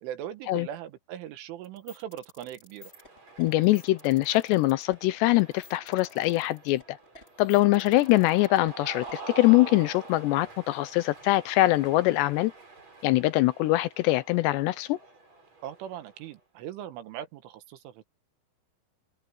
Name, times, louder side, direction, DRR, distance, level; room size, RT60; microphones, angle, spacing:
voice 1, 0.0-2.9 15.6-18.1, right 11 dB, 80° right, 3.9 m, -40 dB
sound 1, 1.6-9.1, left 2 dB, 10° left, 5.0 m, -52 dB
Cheering, 2.8-16.3, right 3 dB, 35° right, 8.8 m, -47 dB
voice 2, 3.4-7.0 7.4-12.5 13.0-15.0, left 18 dB, 80° left, 2.6 m, -23 dB
open air
omnidirectional pair, 5.6 m